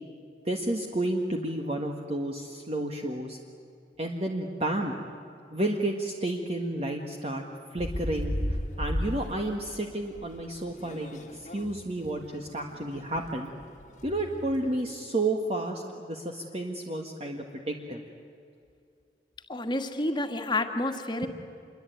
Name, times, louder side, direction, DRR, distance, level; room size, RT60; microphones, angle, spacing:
voice 1, 0.4-3.4 4.0-5.0 5.5-7.4 7.7-8.3 8.8-11.1 11.5-13.5 14.0-18.0, right 1 dB, 35° right, 2 dB, 1.6 m, -31 dB
sound 1, 7.8-14.9, equal, 40° left, 1.7 m, -36 dB
voice 2, 19.5-21.3, left 2 dB, 25° left, 6 dB, 1.8 m, -29 dB
27.0 x 23.0 x 9.3 m, 2.5 s
head